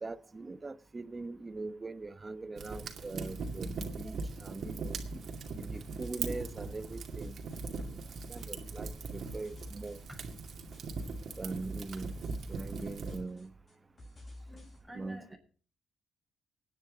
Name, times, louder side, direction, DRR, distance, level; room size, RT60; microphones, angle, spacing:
voice 1, 0.0-5.0 5.5-7.4 8.3-10.0 11.4-12.1 12.5-13.5 14.9-15.4, right 3 dB, 25° right, 1.0 m, -42 dB
Fire, 2.6-13.2, right 4 dB, 55° right, 2.3 m, -40 dB
sound 1, 5.4-14.8, left 1 dB, 40° left, 7.8 m, -53 dB
voice 2, 14.4-15.4, right 1 dB, 5° left, 5.7 m, -50 dB
20.0 x 9.7 x 4.0 m
cardioid pair, 90°, 0 cm